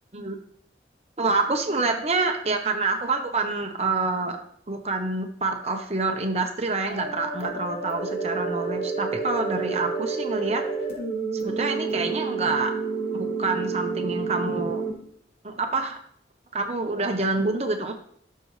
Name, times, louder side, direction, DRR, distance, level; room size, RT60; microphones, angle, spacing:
voice 1, 1.2-4.4 4.7-10.6 11.4-12.7 13.1-14.8 15.4-16.0 16.5-17.9, right 3 dB, 35° right, 4 dB, 0.9 m, -27 dB
sound 1, 6.9-14.9, right 4 dB, 55° left, 3.8 m, -29 dB
16.5 x 6.6 x 3.3 m, 0.68 s
head